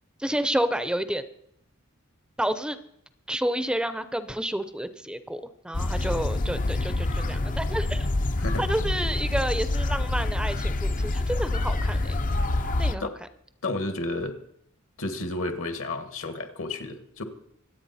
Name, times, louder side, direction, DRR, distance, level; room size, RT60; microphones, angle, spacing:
voice 1, 0.2-1.2 2.4-2.8 3.3-8.1 8.6-12.2 12.8-13.1, right 1 dB, 5° right, 12 dB, 0.6 m, -29 dB
sound 1, 5.7-12.9, left 2 dB, 40° left, 0.6 m, -26 dB
voice 2, 13.6-14.4 15.0-17.2, left 2 dB, 65° left, 8 dB, 1.6 m, -31 dB
25.0 x 8.6 x 4.2 m, 0.73 s
head